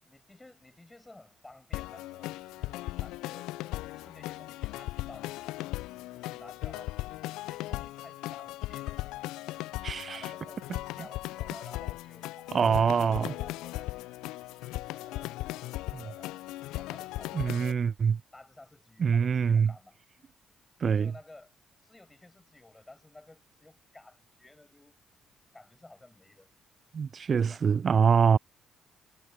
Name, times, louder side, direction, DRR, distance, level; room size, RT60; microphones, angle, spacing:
voice 1, 0.0-7.0 7.5-9.8 10.1-12.6 13.0-13.9 14.9-17.9 18.3-20.0 20.8-21.5 21.8-25.0 25.5-26.5 27.3-27.6, left 2 dB, 15° left, 7.4 m, -54 dB
sound 1, 1.7-17.7, left 18 dB, 70° left, 0.5 m, -38 dB
voice 2, 9.8-10.2 12.5-13.3 15.9-16.0 17.3-18.2 19.0-19.7 20.8-21.1 26.9-28.4, right 6 dB, 45° right, 0.4 m, -24 dB
figure-of-eight pair, 40°, 0 cm